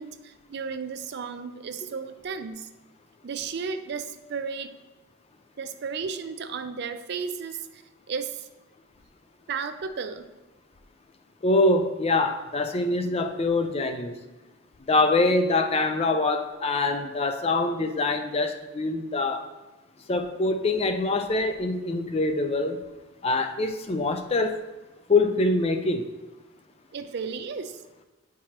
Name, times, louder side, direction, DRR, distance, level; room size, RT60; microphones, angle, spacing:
voice 1, 0.0-2.7 3.2-4.7 5.6-7.8 8.1-8.5 9.5-10.3 26.9-27.8, right 5 dB, 55° right, 0.4 m, -34 dB
voice 2, 11.4-14.2 14.9-19.4 20.1-22.8 23.2-24.6 25.1-26.1, left 2 dB, 30° left, 0.4 m, -24 dB
8.5 x 4.6 x 2.9 m
head